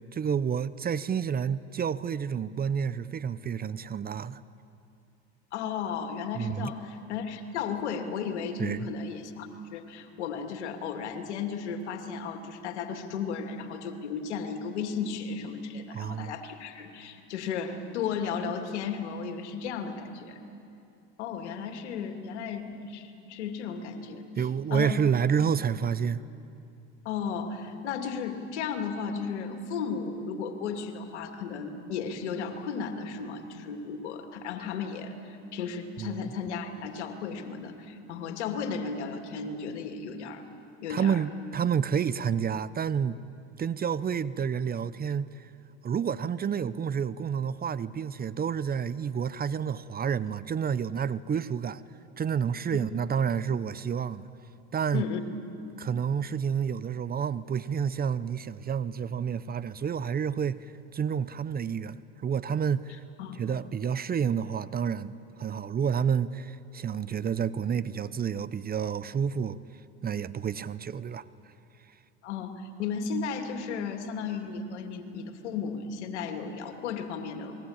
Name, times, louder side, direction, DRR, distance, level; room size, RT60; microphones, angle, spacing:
voice 1, 0.1-4.4 6.4-6.7 8.6-8.9 15.9-16.3 24.4-26.2 36.0-36.2 40.9-43.2 43.6-45.5 45.8-51.8 52.2-54.3 54.7-55.0 55.8-63.0 63.4-69.6 70.0-71.2, right 7 dB, 25° right, 16 dB, 0.8 m, -29 dB
voice 2, 5.5-20.4 21.2-24.9 27.0-40.4 40.8-41.2 54.9-55.2 63.2-63.4 72.2-72.5 72.8-77.6, left 6 dB, 80° left, 5 dB, 2.6 m, -34 dB
28.5 x 21.5 x 8.9 m, 2.7 s
hypercardioid pair, 85°, 34 cm